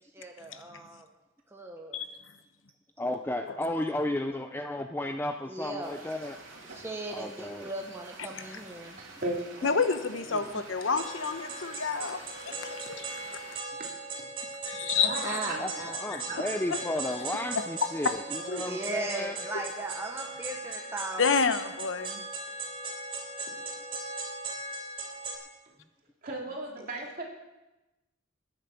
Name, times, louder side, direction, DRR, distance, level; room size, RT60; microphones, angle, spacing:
voice 1, 0.1-1.1 1.5-2.0 5.5-6.1 6.6-9.0 9.6-9.8 10.3-10.6 15.2-16.0 18.6-21.4, right 2 dB, 10° right, 1 dB, 1.0 m, -38 dB
voice 2, 3.0-6.4 7.1-7.7 15.6-19.6, left 1 dB, 10° left, 6 dB, 0.5 m, -33 dB
sound 1, 5.8-13.6, right 3 dB, 70° right, 2.8 m, -49 dB
voice 3, 9.0-9.7 11.6-11.7 13.8-13.9 14.2-14.3 15.0-15.6 16.3-16.9 26.2-27.2, right 2 dB, 45° right, -1 dB, 2.9 m, -36 dB
voice 4, 9.6-13.1 14.7-15.4 17.6-17.7 18.5-18.7 21.2-22.2, left 5 dB, 70° left, 10 dB, 0.9 m, -29 dB
sound 2, 11.0-25.4, right 2 dB, 30° right, 3.4 m, -38 dB
13.0 x 10.0 x 7.0 m, 1.0 s
head